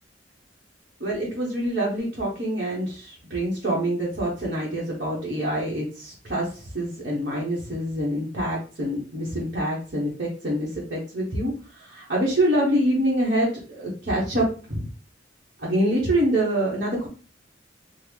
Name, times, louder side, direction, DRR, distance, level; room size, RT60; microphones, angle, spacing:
voice 1, 1.0-14.9 15.6-17.1, right 1 dB, 50° right, -7 dB, 1.0 m, -26 dB
3.8 x 2.1 x 3.1 m, 0.38 s
head